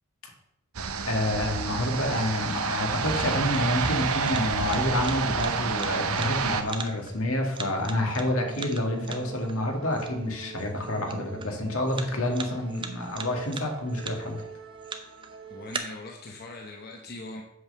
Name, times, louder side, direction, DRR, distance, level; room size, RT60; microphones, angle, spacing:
sound 1, 0.7-6.6, right 5 dB, 80° right, 0.8 m, -29 dB
voice 1, 1.0-14.4, left 1 dB, 75° left, 2 dB, 2.0 m, -28 dB
sound 2, 2.0-15.8, right 5 dB, 20° right, 0.7 m, -43 dB
sound 3, 7.7-15.8, right 4 dB, 55° right, 1.1 m, -44 dB
voice 2, 15.5-17.4, left 2 dB, 45° left, 1 dB, 0.9 m, -41 dB
7.8 x 5.5 x 6.9 m, 0.81 s
head